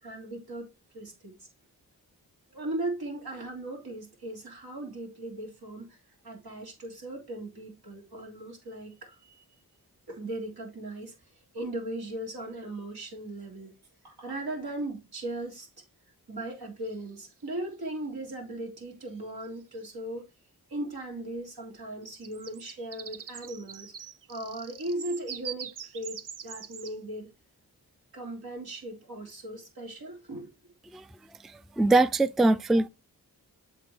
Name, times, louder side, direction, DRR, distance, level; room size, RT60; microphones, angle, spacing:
voice 1, 0.0-1.5 2.5-5.9 6.2-9.4 10.1-11.1 11.5-13.7 14.0-15.7 16.3-20.3 20.7-23.9 24.3-27.3 28.1-30.5, right 1 dB, 75° right, 3.3 m, -38 dB
sound 1, 12.5-12.6 16.8-17.4 19.1-19.2 19.4-19.8 22.0-27.0, right 7 dB, 55° right, 0.6 m, -43 dB
voice 2, 31.8-32.9, right 2 dB, ahead, 0.3 m, -22 dB
7.6 x 3.8 x 4.7 m
cardioid pair, 45°, 38 cm